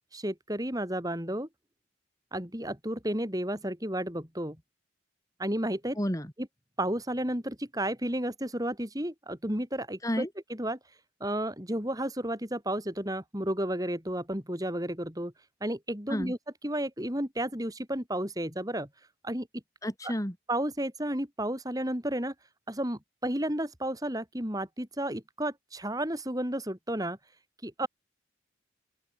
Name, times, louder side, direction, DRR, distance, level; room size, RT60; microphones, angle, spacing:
voice 1, 0.1-1.5 2.3-4.6 5.4-6.0 6.4-6.5 6.8-10.8 11.2-15.3 15.6-16.4 16.6-18.9 19.2-19.5 20.0-20.1 20.5-22.3 22.7-27.2 27.6-27.9, right 1 dB, 20° right, 4.1 m, -32 dB
voice 2, 6.0-6.3 10.0-10.3 16.1-16.3 19.8-20.3, equal, 15° left, 4.6 m, -31 dB
open air
head